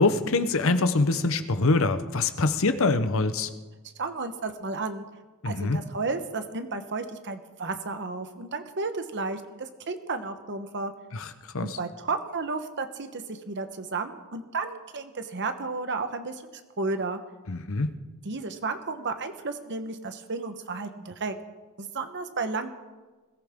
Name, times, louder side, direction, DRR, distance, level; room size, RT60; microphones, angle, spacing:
voice 1, 0.0-3.5 5.4-5.8 11.1-11.3 11.5-11.8 17.5-17.9, left 3 dB, 65° left, 10 dB, 0.9 m, -24 dB
voice 2, 3.8-5.0 5.4-10.9 11.6-16.4 16.8-17.2 18.2-21.4 21.8-22.7, right 3 dB, 55° right, 8 dB, 1.1 m, -33 dB
21.5 x 14.0 x 3.7 m, 1.3 s
head